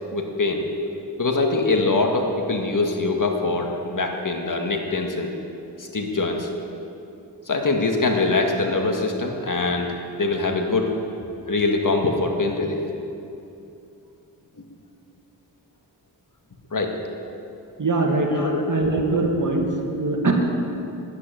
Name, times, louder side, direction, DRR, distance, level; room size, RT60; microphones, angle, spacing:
voice 1, 0.1-0.6 1.2-5.3 5.8-6.5 7.5-10.9 11.5-12.8 16.7-17.0 18.3-18.6, left 3 dB, 45° left, 2 dB, 1.9 m, -23 dB
voice 2, 17.8-18.3 18.7-20.3, right 3 dB, 45° right, 1 dB, 2.4 m, -22 dB
11.0 x 9.1 x 9.2 m, 2.6 s
cardioid pair, 50°, 43 cm